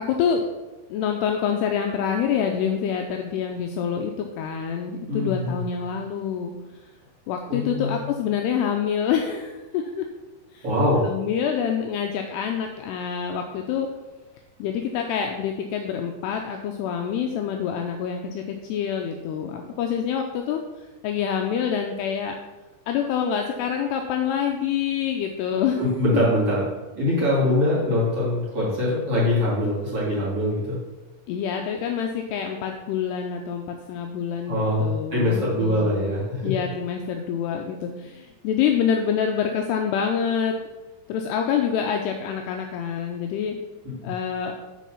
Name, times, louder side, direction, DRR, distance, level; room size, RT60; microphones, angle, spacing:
voice 1, 0.1-0.4 0.9-6.5 7.3-10.1 10.5-10.7 11.0-13.9 14.6-20.6 21.0-22.4 22.9-25.8 26.1-26.3 31.3-36.1 36.4-40.5 41.1-43.6 44.0-44.6, left 7 dB, 85° left, 3 dB, 2.5 m, -26 dB
voice 2, 5.1-5.6 7.5-7.9 10.6-11.0 25.8-30.8 34.5-36.5, left 1 dB, 40° right, -7 dB, 2.3 m, -23 dB
9.2 x 4.6 x 5.8 m, 1.1 s
omnidirectional pair, 5.2 m